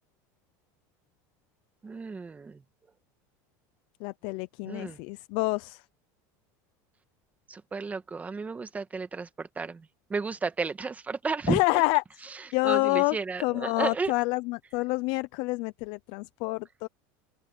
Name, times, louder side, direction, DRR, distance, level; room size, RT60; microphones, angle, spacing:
voice 1, 1.8-2.6 4.6-5.0 7.5-11.8 12.6-14.1, right 4 dB, 15° right, 1.6 m, -33 dB
voice 2, 4.0-5.8 11.5-12.0 12.5-16.9, left 24 dB, 60° left, 0.6 m, -28 dB
open air
supercardioid pair, 135°, 9 cm